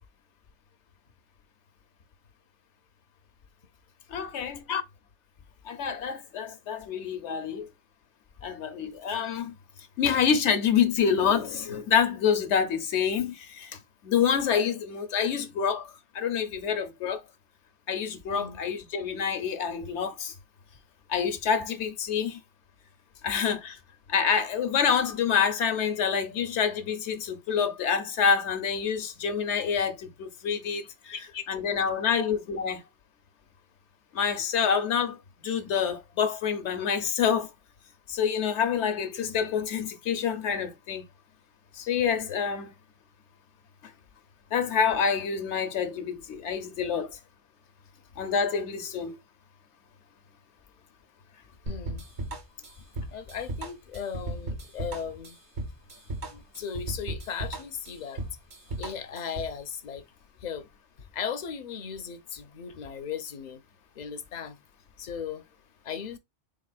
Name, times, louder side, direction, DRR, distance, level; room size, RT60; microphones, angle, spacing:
voice 1, 4.1-4.6 5.6-7.7 8.4-9.5 10.0-13.8 14.0-17.2 17.9-20.3 21.1-22.4 23.2-23.8 24.1-31.1 31.5-32.8 34.1-37.5 38.1-41.0 41.7-42.7 44.5-47.2 48.2-49.1, left 7 dB, 80° left, 1.0 m, -27 dB
voice 2, 31.1-31.5 32.0-32.1 51.7-52.1 53.1-55.4 56.3-58.2 58.8-60.0 60.4-60.7 61.1-63.6 64.0-64.6 65.0-65.4 65.8-66.2, left 7 dB, 50° left, 0.5 m, -36 dB
sound 1, 51.7-59.6, right 2 dB, 70° right, 1.3 m, -36 dB
3.9 x 3.6 x 2.3 m
omnidirectional pair, 1.2 m